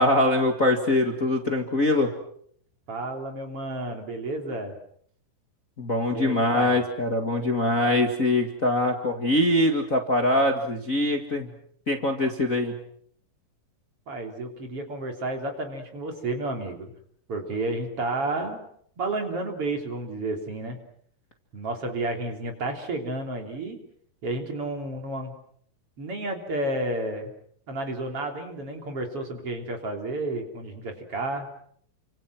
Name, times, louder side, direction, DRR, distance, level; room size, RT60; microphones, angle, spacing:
voice 1, 0.0-2.1 5.8-11.5 11.9-12.8, left 1 dB, 30° left, 3 dB, 2.0 m, -23 dB
voice 2, 2.9-4.7 6.1-6.8 14.1-16.9 17.3-18.6 19.0-20.8 21.5-23.8 24.2-25.4 26.0-27.3 27.7-31.5, right 2 dB, 45° right, 4 dB, 4.2 m, -31 dB
30.0 x 26.0 x 6.2 m, 0.64 s
omnidirectional pair, 3.7 m